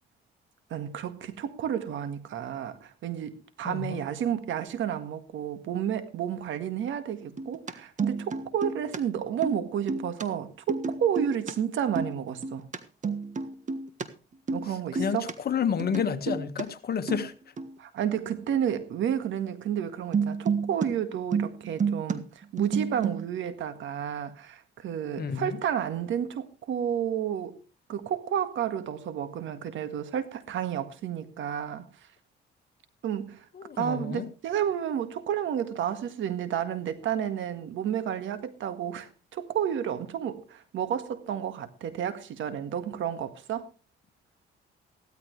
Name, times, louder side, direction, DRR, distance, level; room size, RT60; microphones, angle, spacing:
voice 1, 0.7-12.7 14.5-15.3 17.8-27.6 27.9-31.9 33.0-33.5 33.8-43.7, right 9 dB, 75° right, 1.8 m, -31 dB
voice 2, 3.6-4.0 14.9-17.3 25.2-25.6 33.5-34.3, left 7 dB, 50° left, 1.6 m, -30 dB
sound 1, 7.2-7.7 8.0-9.0 9.3-9.6 9.9-10.2 10.7-11.5 11.8-12.8 13.0-14.0 14.3-14.7 15.0-15.3 15.8-16.6 17.1-17.3 17.6-17.7 20.1-20.9 21.1-22.2 22.4-23.3, right 5 dB, 40° right, 1.5 m, -30 dB
16.0 x 13.5 x 3.3 m
cardioid pair, 90°, 20 cm